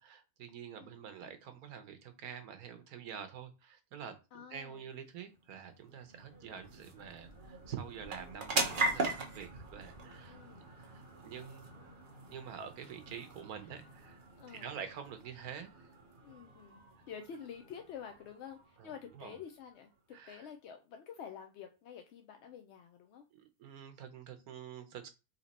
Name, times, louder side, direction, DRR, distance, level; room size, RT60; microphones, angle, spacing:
voice 1, 0.0-4.2 4.5-10.4 10.8-11.7 12.3-15.9 18.8-19.4 20.1-20.5 23.3-25.1, right 8 dB, 85° right, 1.2 m, -47 dB
voice 2, 0.7-1.1 4.3-4.8 8.9-9.3 10.3-10.7 14.4-14.8 16.2-19.9 20.3-23.2, left 8 dB, 65° left, 0.7 m, -49 dB
sound 1, 5.1-20.0, right 3 dB, 40° right, 0.9 m, -41 dB
4.1 x 2.9 x 4.1 m
omnidirectional pair, 1.5 m